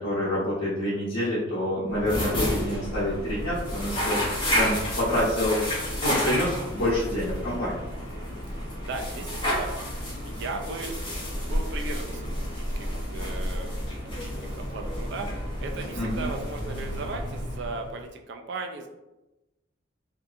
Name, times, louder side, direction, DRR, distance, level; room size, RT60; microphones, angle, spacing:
voice 1, 0.0-5.6 6.0-7.8 15.9-16.3, left 1 dB, 80° left, -11 dB, 0.9 m, -27 dB
sound 1, 1.9-18.0, equal, 25° left, 0.8 m, -31 dB
voice 2, 8.1-11.0 11.2-18.9, right 3 dB, 60° right, 3 dB, 0.3 m, -37 dB
2.7 x 2.4 x 2.5 m, 0.98 s
head